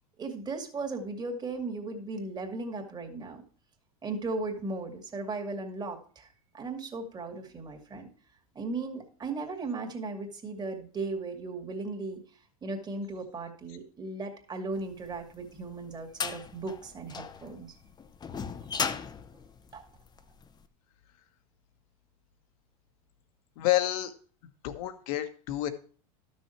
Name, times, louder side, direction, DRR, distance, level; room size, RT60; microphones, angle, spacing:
voice 1, 0.2-3.4 4.0-6.3 6.5-8.1 8.5-12.2 12.6-17.7 19.7-19.8, right 3 dB, 20° right, 3 dB, 2.3 m, -36 dB
sound 1, 15.1-20.5, left 6 dB, 20° left, 0.8 m, -36 dB
voice 2, 23.6-24.1 24.6-25.7, left 14 dB, 65° left, 9 dB, 1.4 m, -29 dB
12.5 x 6.4 x 4.5 m, 0.43 s
hypercardioid pair, 105°, 19 cm